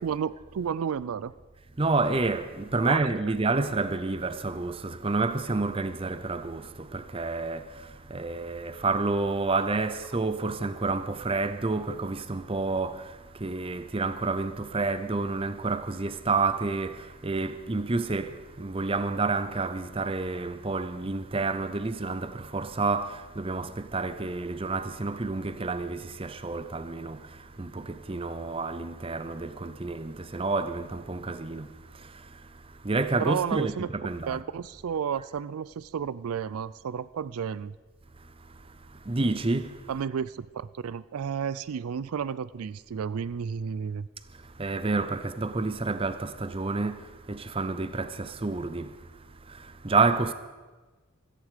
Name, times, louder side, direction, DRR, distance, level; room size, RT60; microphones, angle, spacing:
voice 1, 0.0-1.3 2.8-3.0 33.2-33.9 34.3-37.7 39.9-44.1, right 7 dB, 80° right, 0.4 m, -32 dB
voice 2, 1.8-27.3 27.6-31.7 32.0-32.1 32.8-34.4 39.1-39.8 44.6-48.9 49.5-50.3, right 3 dB, 25° right, 0.6 m, -29 dB
16.5 x 14.5 x 5.1 m
head